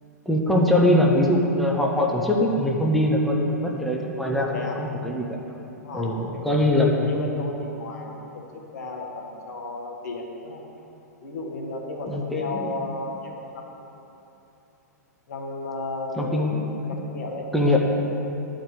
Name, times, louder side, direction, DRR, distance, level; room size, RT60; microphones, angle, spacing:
voice 1, 0.2-5.3 5.9-7.1 12.1-12.7 16.2-16.6 17.5-17.8, left 1 dB, ahead, -2 dB, 1.2 m, -22 dB
voice 2, 4.4-4.8 5.8-10.6 11.2-13.8 15.3-16.4 16.9-17.5, left 2 dB, 70° left, 0 dB, 1.7 m, -34 dB
11.0 x 5.0 x 8.5 m, 2.9 s
hypercardioid pair, 110°, 9 cm